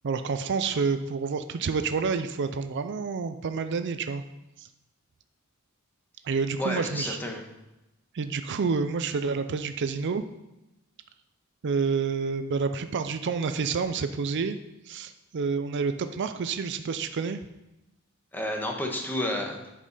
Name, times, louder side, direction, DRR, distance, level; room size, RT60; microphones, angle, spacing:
voice 1, 0.0-4.2 4.6-4.7 6.2-7.2 8.1-10.2 11.6-14.6 14.9-17.4, right 5 dB, 55° right, 9 dB, 0.4 m, -28 dB
voice 2, 6.6-7.4 18.3-19.6, left 1 dB, 10° left, 1 dB, 1.2 m, -30 dB
9.9 x 5.3 x 5.4 m, 0.97 s
head